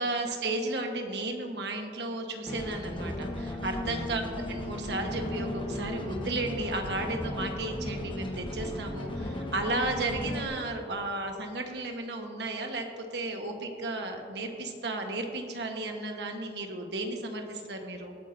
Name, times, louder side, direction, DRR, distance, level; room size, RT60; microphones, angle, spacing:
voice 1, 0.0-4.2 4.5-18.1, right 2 dB, 75° right, 3 dB, 1.3 m, -34 dB
sound 1, 2.5-10.5, left 1 dB, 30° left, 1.1 m, -36 dB
19.5 x 8.8 x 2.7 m, 2.6 s
head